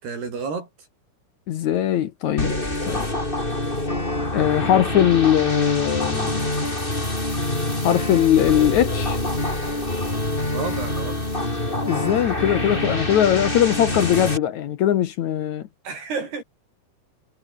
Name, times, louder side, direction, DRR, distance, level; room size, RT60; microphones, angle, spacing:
voice 1, 0.0-0.7 10.5-11.2 15.8-16.4, right 5 dB, 75° right, 8.2 m, -30 dB
voice 2, 1.5-2.5 2.9-3.1 4.3-6.5 7.8-9.2 11.8-15.6, left 11 dB, 65° left, 1.9 m, -20 dB
sound 1, 2.4-14.4, left 1 dB, 10° left, 5.0 m, -25 dB
omnidirectional pair, 4.6 m